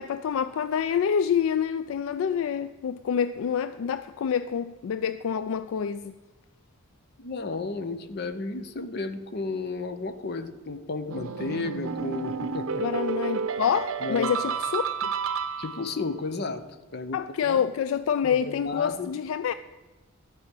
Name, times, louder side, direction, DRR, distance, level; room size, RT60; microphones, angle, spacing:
voice 1, 0.0-6.1 12.8-15.1 17.1-19.5, left 7 dB, 75° left, 0.3 m, -27 dB
voice 2, 7.2-12.8 14.0-14.4 15.6-16.6 16.9-17.6 18.3-19.1, left 3 dB, 50° left, 0.7 m, -33 dB
sound 1, 11.1-16.0, right 6 dB, 75° right, 0.6 m, -31 dB
13.0 x 4.9 x 8.2 m
head